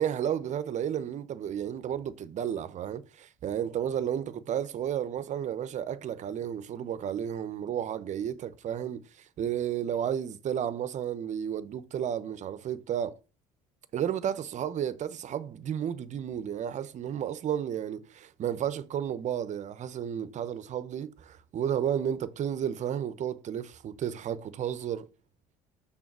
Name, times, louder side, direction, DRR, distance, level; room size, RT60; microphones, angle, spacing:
voice 1, 0.0-9.0 9.4-13.2 13.9-25.1, right 9 dB, 50° right, 0.8 m, -32 dB
6.3 x 3.8 x 6.0 m
supercardioid pair, 85°, 16 cm